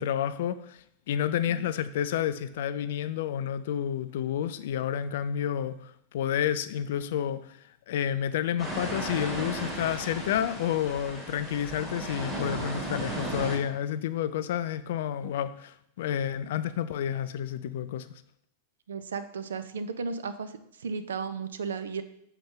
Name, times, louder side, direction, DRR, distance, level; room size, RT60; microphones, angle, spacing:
voice 1, 0.0-7.6 7.9-18.1, left 9 dB, 55° left, 0.4 m, -30 dB
sound 1, 8.6-13.6, right 1 dB, 15° right, 2.4 m, -35 dB
voice 2, 18.9-20.5 20.8-22.0, right 5 dB, 65° right, 0.5 m, -34 dB
6.9 x 4.5 x 3.8 m
figure-of-eight pair, 90°, 0 cm